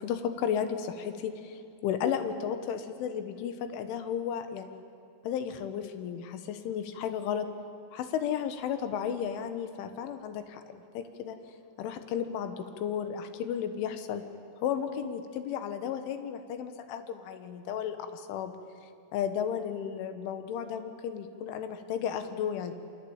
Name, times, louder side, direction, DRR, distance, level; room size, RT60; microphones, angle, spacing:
voice 1, 0.0-4.8 5.2-7.5 7.9-11.4 11.8-14.3 14.6-18.5 19.1-22.7, left 8 dB, 75° left, 8 dB, 3.8 m, -33 dB
27.5 x 24.0 x 8.9 m, 2.4 s
omnidirectional pair, 5.8 m